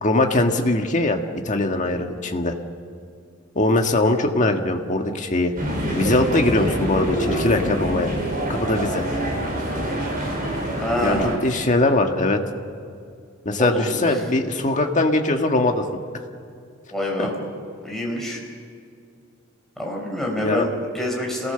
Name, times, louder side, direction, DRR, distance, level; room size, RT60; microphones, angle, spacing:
voice 1, 0.0-1.2 1.5-2.5 3.6-5.5 6.0-8.1 8.5-9.0 11.0-12.4 13.5-15.8 17.2-17.3 20.4-20.7, left 2 dB, 40° left, 4 dB, 1.7 m, -21 dB
sound 1, 5.6-11.4, equal, 45° right, 5.7 m, -26 dB
voice 2, 10.8-11.3 13.6-14.3 16.9-17.3 17.8-18.4 19.8-21.5, left 1 dB, ahead, -1 dB, 4.7 m, -26 dB
27.0 x 18.0 x 6.9 m, 2.3 s
head